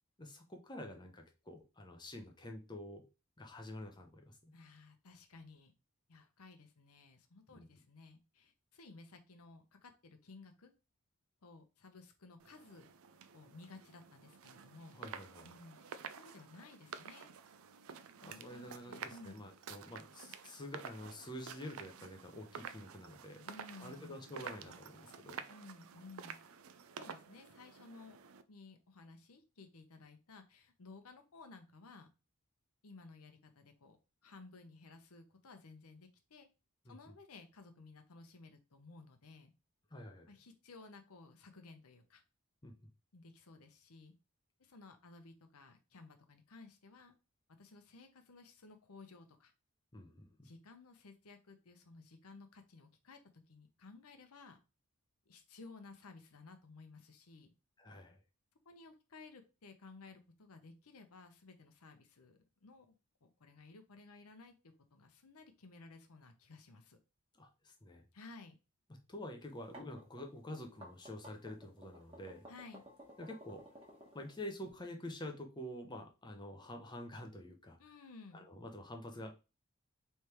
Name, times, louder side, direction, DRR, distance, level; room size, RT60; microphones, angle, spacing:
voice 1, 0.2-3.0 3.4-4.5 7.5-7.7 14.9-15.5 18.2-23.5 23.8-25.4 36.9-37.0 39.9-40.3 42.6-42.7 49.9-50.5 57.8-58.2 67.3-68.0 69.1-72.5 73.2-73.6 74.1-77.8 78.3-79.3, left 1 dB, 20° left, 4 dB, 0.7 m, -48 dB
voice 2, 4.5-5.7 6.1-10.7 11.4-12.9 13.3-15.0 15.4-17.3 18.2-19.4 23.4-24.2 25.5-26.4 27.0-28.2 28.5-32.1 32.8-34.0 34.2-36.5 36.8-39.5 40.3-42.2 43.1-44.1 44.6-47.2 47.6-49.5 50.4-54.6 55.3-57.5 58.6-67.0 68.1-68.6 72.5-72.8 77.8-78.4, left 3 dB, 75° left, 7 dB, 0.8 m, -56 dB
sound 1, 12.4-28.4, right 7 dB, 65° right, 0.4 m, -51 dB
sound 2, 69.5-74.7, equal, 25° right, 1.3 m, -55 dB
3.3 x 3.2 x 4.4 m, 0.30 s
head